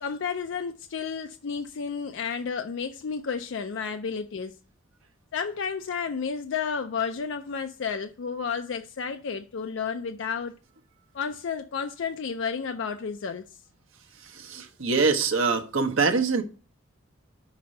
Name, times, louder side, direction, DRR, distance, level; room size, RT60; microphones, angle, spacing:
voice 1, 0.0-4.5 5.3-10.5 11.1-13.4, left 6 dB, 65° left, 0.4 m, -31 dB
voice 2, 14.3-16.4, right 4 dB, 80° right, 1.0 m, -24 dB
6.0 x 4.3 x 6.2 m
head